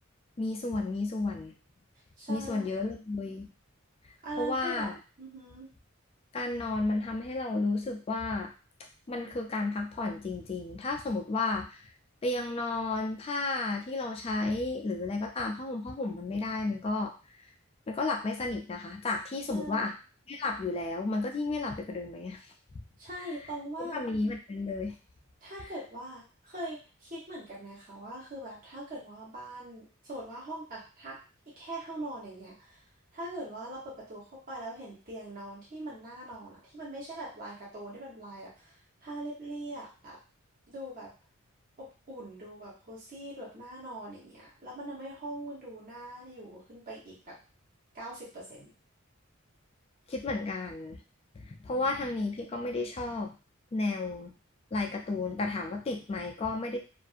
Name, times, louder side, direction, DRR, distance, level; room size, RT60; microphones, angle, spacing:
voice 1, 0.4-1.5 2.3-3.5 4.4-5.0 6.3-8.5 9.1-11.9 12.2-17.1 17.9-19.9 20.3-22.5 23.2-23.3 23.9-25.0 50.1-51.0 51.3-53.3 53.7-54.3 54.7-56.8, left 3 dB, 30° left, 2 dB, 0.3 m, -32 dB
voice 2, 2.2-2.9 4.2-4.9 5.2-5.7 19.5-19.9 23.0-24.0 25.4-31.2 31.5-32.8 33.1-38.8 39.0-40.2 40.7-41.1 41.8-47.4 47.9-48.7, right 1 dB, 40° right, -6 dB, 0.9 m, -42 dB
2.5 x 2.5 x 2.4 m, 0.34 s
head